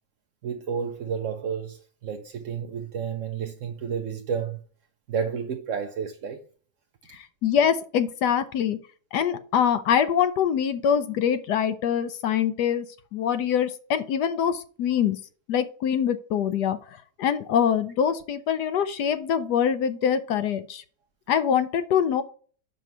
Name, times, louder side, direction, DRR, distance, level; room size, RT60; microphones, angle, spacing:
voice 1, 0.4-4.6 5.1-6.4, right 7 dB, 60° right, 0.8 m, -31 dB
voice 2, 7.1-8.8 9.1-12.9 13.1-15.2 15.5-16.8 17.2-20.8 21.3-22.2, left 8 dB, 70° left, 1.2 m, -24 dB
5.5 x 5.4 x 6.0 m
omnidirectional pair, 2.0 m